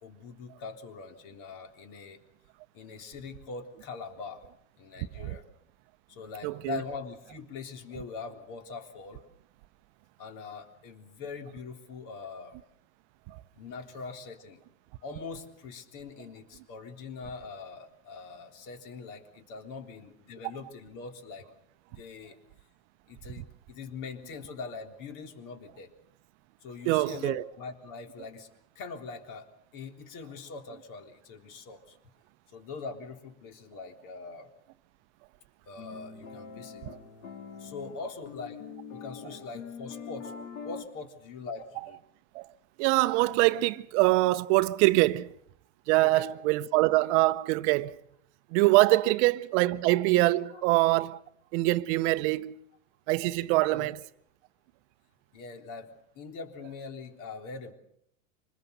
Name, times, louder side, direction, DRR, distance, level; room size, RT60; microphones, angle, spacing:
voice 1, 0.0-2.2 2.7-4.4 4.8-5.4 6.1-9.3 10.2-12.6 13.6-14.6 15.0-21.5 21.9-22.4 23.1-25.9 26.6-28.5 28.8-29.5 29.7-32.0 32.5-34.5 35.7-36.8 37.6-38.6 38.9-40.3 40.6-42.0 46.0-46.3 50.5-50.6 53.7-53.9 55.3-57.7, left 4 dB, 50° left, 3.7 m, -42 dB
voice 2, 6.4-6.8 13.3-13.4 26.8-27.4 36.8-37.0 42.3-42.5 42.8-45.3 45.9-48.0 48.5-51.2 51.5-52.6 53.1-54.0, right 20 dB, 55° right, 0.8 m, -24 dB
sound 1, 35.8-40.8, left 6 dB, 75° left, 3.7 m, -43 dB
26.0 x 20.5 x 6.8 m
supercardioid pair, 120°, 41 cm